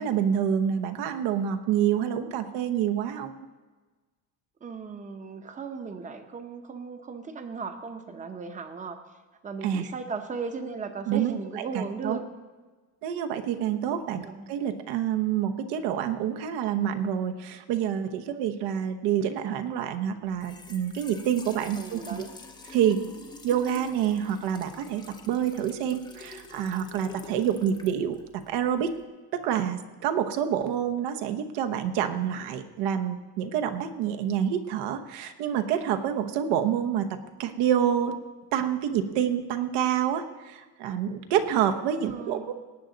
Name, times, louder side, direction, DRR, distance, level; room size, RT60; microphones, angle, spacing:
voice 1, 0.0-3.4 9.6-9.9 11.1-12.2 13.0-22.2 22.7-23.1 23.4-28.2 28.5-28.9 29.3-37.1 37.4-38.1 38.5-42.4, right 9 dB, 75° right, 6 dB, 1.1 m, -27 dB
voice 2, 4.6-9.0 9.4-12.2 14.2-14.5 21.8-22.3 42.0-42.5, right 4 dB, 20° right, 7 dB, 0.8 m, -36 dB
Trickle dribble / Fill (with liquid), 20.3-29.0, left 3 dB, 10° left, 0.6 m, -47 dB
18.5 x 9.1 x 3.9 m, 1.3 s
cardioid pair, 175°, 40 cm